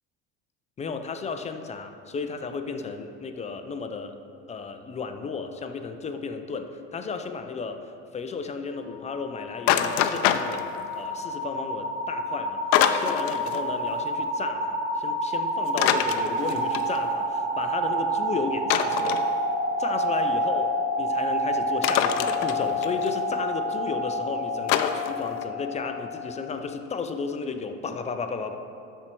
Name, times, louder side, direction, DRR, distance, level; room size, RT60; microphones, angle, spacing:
voice 1, 0.8-4.2 4.5-7.8 8.1-12.6 12.9-19.2 19.8-20.7 21.0-28.6, left 4 dB, 20° left, 7 dB, 0.5 m, -33 dB
sound 1, 8.8-26.7, equal, 40° right, 1.3 m, -29 dB
sound 2, 9.7-10.9 12.7-13.6 13.9-14.0 15.7-17.0 18.7-19.2 21.8-23.1 24.7-25.4, left 10 dB, 85° left, 0.6 m, -25 dB
12.5 x 4.5 x 4.5 m, 2.7 s
supercardioid pair, 115°, 30 cm